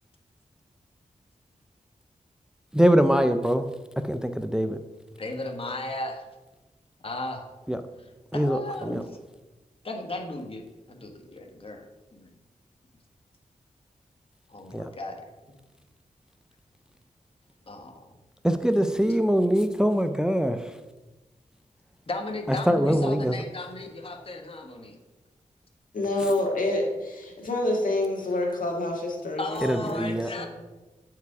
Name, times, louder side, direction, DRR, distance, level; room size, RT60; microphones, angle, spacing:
voice 1, 2.7-3.7 4.0-4.8 7.7-7.8 8.3-9.0 14.7-14.9 18.4-20.7 22.5-23.4 29.6-30.3, equal, 5° right, 9 dB, 0.4 m, -23 dB
voice 2, 5.2-6.2 7.0-7.4 8.3-9.0 9.8-10.6 10.9-11.8 12.1-12.3 14.5-15.2 17.7-17.9 22.1-24.9 29.4-30.5, left 2 dB, 40° left, 3 dB, 1.2 m, -35 dB
voice 3, 22.7-23.0 25.9-30.5, left 2 dB, 80° left, 0 dB, 1.7 m, -28 dB
8.0 x 4.8 x 4.7 m, 1.1 s
cardioid pair, 65°, 14 cm